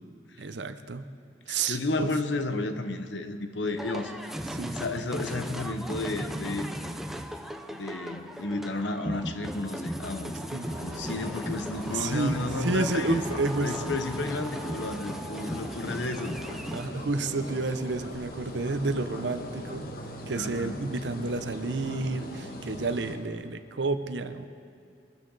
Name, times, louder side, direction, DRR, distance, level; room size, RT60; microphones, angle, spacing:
voice 1, 0.4-1.1 1.5-2.1 4.5-4.8 10.5-10.7 11.9-13.8 16.7-19.9 20.3-24.5, right 3 dB, 75° right, 10 dB, 0.8 m, -30 dB
voice 2, 1.5-4.3 4.7-6.7 7.7-10.4 10.7-16.4 20.3-20.8, left 2 dB, 85° left, 8 dB, 1.0 m, -32 dB
sound 1, 3.8-16.9, equal, ahead, 0.6 m, -37 dB
sound 2, 10.4-23.2, equal, 55° left, 1.3 m, -40 dB
23.5 x 12.5 x 4.0 m, 2.3 s
head